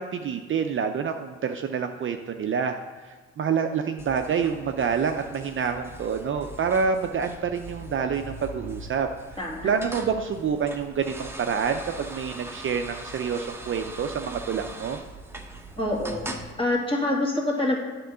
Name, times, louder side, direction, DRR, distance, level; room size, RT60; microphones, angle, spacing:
voice 1, 0.0-9.1 9.6-15.0, right 6 dB, 45° right, 6 dB, 0.5 m, -27 dB
sound 1, 4.0-16.5, right 1 dB, 10° right, 0.9 m, -41 dB
voice 2, 9.4-9.7 15.8-16.3 16.6-17.8, left 1 dB, 15° left, -3 dB, 2.1 m, -26 dB
9.2 x 3.7 x 6.7 m, 1.4 s
cardioid pair, 90°, 30 cm